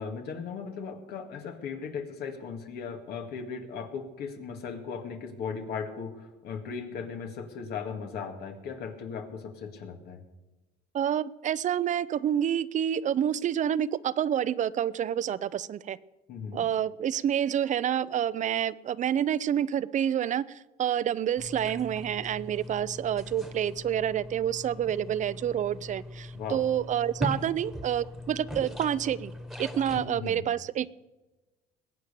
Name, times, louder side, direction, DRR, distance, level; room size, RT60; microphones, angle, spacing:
voice 1, 0.0-10.2 16.3-16.7 26.3-26.6 29.9-30.4, left 6 dB, 75° left, 5 dB, 2.1 m, -37 dB
voice 2, 10.9-16.0 16.5-29.3 29.6-30.9, right 10 dB, 45° right, 19 dB, 0.6 m, -28 dB
sound 1, 21.4-30.0, equal, ahead, 1.5 m, -40 dB
21.0 x 8.8 x 6.9 m, 1.1 s
cardioid pair, 110°, 17 cm